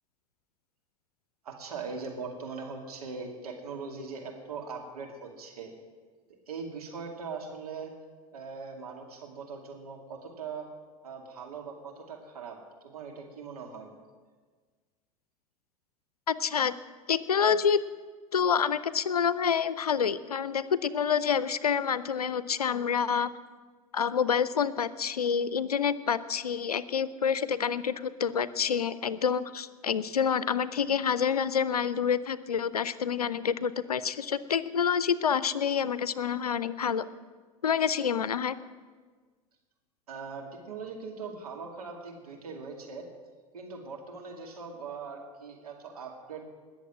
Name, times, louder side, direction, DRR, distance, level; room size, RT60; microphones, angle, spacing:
voice 1, 1.4-5.7 6.5-7.9 8.3-10.7 11.0-12.6 12.8-13.9 40.1-43.0 43.5-46.4, right 5 dB, 80° right, 1 dB, 2.4 m, -40 dB
voice 2, 16.3-16.7 17.1-17.8 18.3-23.3 23.9-37.0 37.6-38.6, left 7 dB, 85° left, 16 dB, 0.5 m, -27 dB
20.5 x 7.3 x 7.5 m, 1.5 s
figure-of-eight pair, 75°, 19 cm